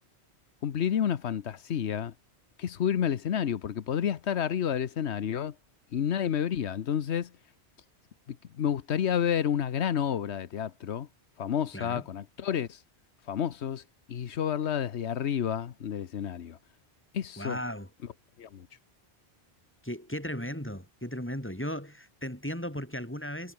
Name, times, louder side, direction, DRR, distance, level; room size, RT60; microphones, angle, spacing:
voice 1, 0.6-2.1 2.6-5.5 5.9-7.3 8.3-11.1 11.4-12.8 13.3-13.8 14.1-16.6 17.1-17.6 18.4-18.7, left 9 dB, 90° left, 1.2 m, -30 dB
voice 2, 11.7-12.0 17.4-17.9 19.8-23.5, equal, 10° left, 5.5 m, -36 dB
omnidirectional pair, 1.1 m